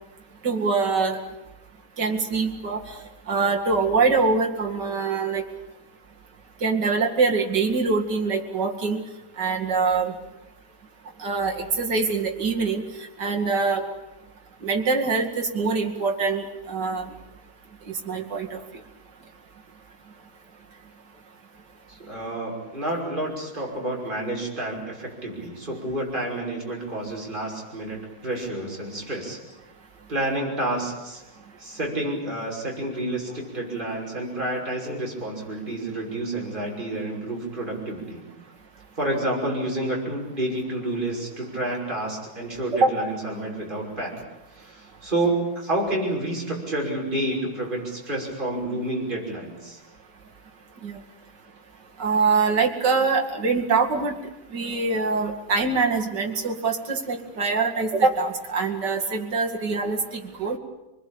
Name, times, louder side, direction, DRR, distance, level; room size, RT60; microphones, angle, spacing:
voice 1, 0.4-1.2 2.0-2.8 3.3-5.4 6.6-9.0 9.4-10.1 11.2-12.8 13.2-13.8 14.6-17.1 18.1-18.6 42.7-42.9 50.8-51.0 52.0-54.2 54.5-60.6, right 4 dB, 55° right, 2 dB, 2.9 m, -24 dB
voice 2, 21.9-29.4 30.1-31.2 31.6-38.2 39.0-44.2 44.5-49.8, right 1 dB, 25° right, -2 dB, 6.2 m, -29 dB
26.0 x 21.0 x 8.7 m, 0.98 s
omnidirectional pair, 2.2 m